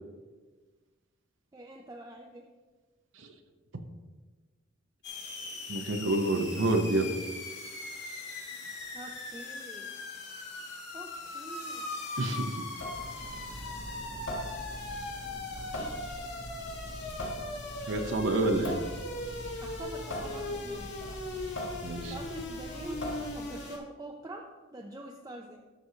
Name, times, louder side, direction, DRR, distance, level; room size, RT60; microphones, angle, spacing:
voice 1, 1.5-2.5 8.9-10.0 10.9-11.9 15.8-16.0 19.6-21.4 22.1-23.0 23.3-25.6, right 1 dB, 20° right, 0 dB, 0.5 m, -45 dB
sound 1, 5.0-23.8, left 2 dB, 65° left, 1.7 m, -40 dB
voice 2, 5.7-7.1 12.2-12.6 17.9-18.8 21.8-22.1, right 2 dB, 75° right, 5 dB, 0.7 m, -28 dB
Water tap faucet / Sink (filling or washing) / Drip, 12.7-23.6, left 1 dB, 80° left, 1.5 m, -41 dB
13.0 x 6.4 x 2.8 m, 1.3 s
head